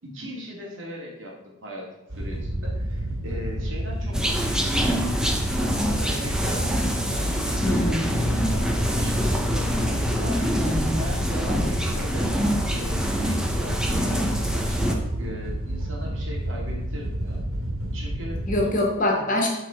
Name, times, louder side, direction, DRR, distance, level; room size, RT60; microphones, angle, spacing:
voice 1, 0.0-5.0 5.5-10.6 10.9-12.3 12.7-17.5 17.9-18.4, equal, 60° right, -2 dB, 2.6 m, -39 dB
Wind / Boat Water vehicle, 2.1-18.6, right 1 dB, 85° right, 2.6 m, -30 dB
sound 1, 4.1-14.9, equal, 5° right, 0.8 m, -25 dB
voice 2, 7.6-8.1 10.6-11.1 11.5-11.7 18.5-19.5, left 1 dB, 40° left, 0 dB, 1.9 m, -25 dB
11.5 x 4.7 x 4.6 m, 0.98 s
head